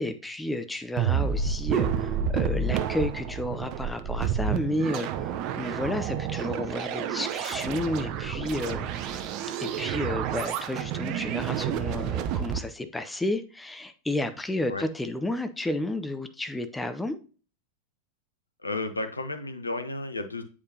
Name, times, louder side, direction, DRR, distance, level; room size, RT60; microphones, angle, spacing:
voice 1, 0.0-9.3 9.6-17.2, left 1 dB, 5° left, 9 dB, 0.6 m, -32 dB
sound 1, 1.0-12.6, right 8 dB, 40° right, 0.6 m, -29 dB
voice 2, 18.6-20.4, left 2 dB, 80° left, 8 dB, 0.8 m, -32 dB
8.5 x 4.9 x 2.8 m, 0.37 s
figure-of-eight pair, 90°, 0 cm